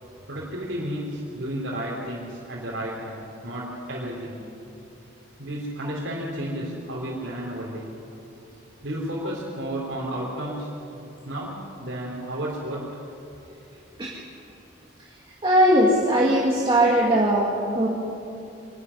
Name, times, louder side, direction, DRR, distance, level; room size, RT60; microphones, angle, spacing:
voice 1, 0.3-4.5 5.4-7.9 8.8-10.8 11.3-13.0, right 1 dB, 65° right, -5 dB, 3.7 m, -32 dB
voice 2, 15.4-17.9, right 1 dB, 25° right, -4 dB, 2.3 m, -19 dB
26.0 x 12.0 x 9.9 m, 2.8 s
head